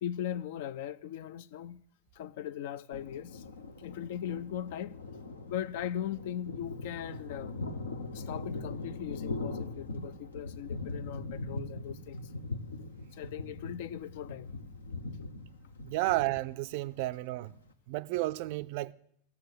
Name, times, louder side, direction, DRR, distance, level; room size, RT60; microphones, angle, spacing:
voice 1, 0.0-1.8 2.1-3.4 3.8-5.0 5.5-7.5 8.1-12.2 13.1-14.5, left 10 dB, 50° left, 0.4 m, -39 dB
Thunder, 2.9-17.7, left 2 dB, 70° left, 0.9 m, -41 dB
voice 2, 15.8-17.5 17.9-18.9, right 19 dB, 45° right, 0.4 m, -32 dB
14.5 x 6.7 x 8.1 m
figure-of-eight pair, 90°, 0 cm